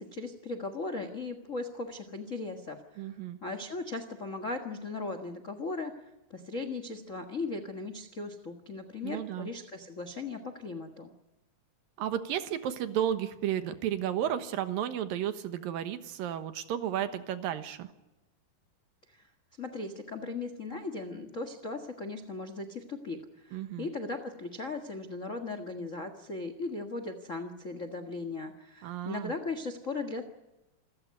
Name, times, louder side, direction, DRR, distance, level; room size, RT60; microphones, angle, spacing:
voice 1, 0.0-3.0 3.4-5.9 6.3-11.1 19.6-30.2, left 3 dB, 85° left, 9 dB, 0.6 m, -38 dB
voice 2, 3.0-3.4 9.0-9.5 12.0-17.9 23.5-23.9 28.8-29.3, right 10 dB, 75° right, 10 dB, 2.9 m, -33 dB
27.5 x 14.5 x 9.5 m, 1.0 s
omnidirectional pair, 4.2 m